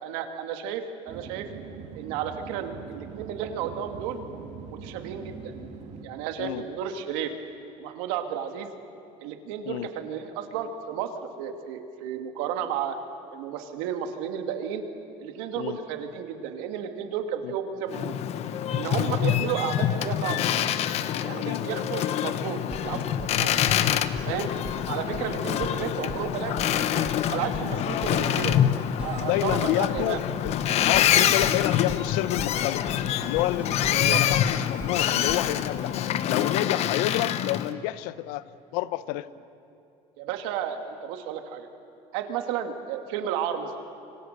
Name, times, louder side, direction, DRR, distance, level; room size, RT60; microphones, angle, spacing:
voice 1, 0.0-1.5 1.9-4.2 4.7-5.5 6.0-7.3 7.8-8.7 9.2-11.1 11.4-13.0 13.3-14.8 15.2-18.2 18.7-20.4 21.2-23.6 24.3-24.5 24.9-28.6 29.0-30.2 34.1-34.2 40.2-41.7 42.1-43.7, right 8 dB, 85° right, 6 dB, 2.2 m, -32 dB
sound 1, 1.1-6.1, right 6 dB, 60° right, 2.7 m, -42 dB
Boat Water vehicle, 17.9-37.7, left 10 dB, 50° left, 1.0 m, -26 dB
sound 2, 22.7-23.3 23.6-24.3 24.7-25.2 25.5-26.2 26.6-27.2 27.4-28.6 29.0-30.1 30.4-31.0 31.3-32.0 32.4-33.0 33.2-33.9 34.3-34.9 35.2-35.8, right 2 dB, 10° right, 2.1 m, -40 dB
voice 2, 29.2-30.5 30.8-32.8 33.2-39.3, left 15 dB, 85° left, 16 dB, 0.8 m, -29 dB
25.5 x 25.5 x 6.7 m, 2.8 s
cardioid pair, 125°, 13 cm